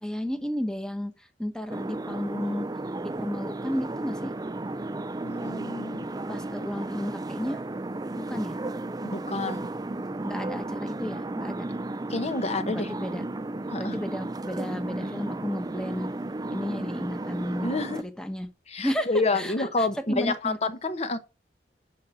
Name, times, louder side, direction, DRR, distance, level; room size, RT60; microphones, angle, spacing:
voice 1, 0.0-2.7 3.0-4.3 6.3-7.6 8.2-8.6 10.2-11.6 12.7-13.2 13.8-16.1 16.5-18.5 18.8-19.1 19.3-20.6, equal, 5° left, 1.2 m, -33 dB
sound 1, 1.7-18.0, right 2 dB, 20° right, 0.4 m, -34 dB
voice 2, 5.2-6.1 9.0-9.7 12.1-12.9 13.7-14.0 17.6-18.0 18.7-21.2, left 3 dB, 35° left, 1.0 m, -28 dB
11.5 x 4.1 x 7.0 m
head